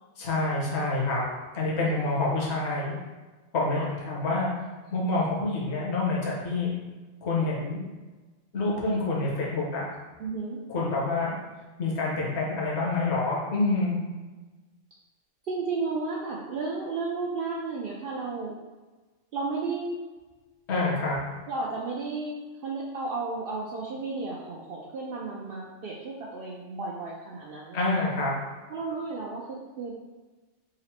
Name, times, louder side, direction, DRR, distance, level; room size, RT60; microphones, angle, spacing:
voice 1, 0.2-1.2 1.5-2.9 3.5-4.5 4.9-6.7 7.2-7.8 8.5-9.8 10.7-11.3 11.8-13.9 20.7-21.2 27.7-28.3, left 2 dB, 70° left, -4 dB, 1.2 m, -27 dB
voice 2, 10.2-10.6 15.4-18.5 19.3-20.0 21.5-22.4 22.6-27.9 28.7-29.9, right 3 dB, 60° right, -4 dB, 0.7 m, -33 dB
3.9 x 2.0 x 4.2 m, 1.3 s
omnidirectional pair, 1.2 m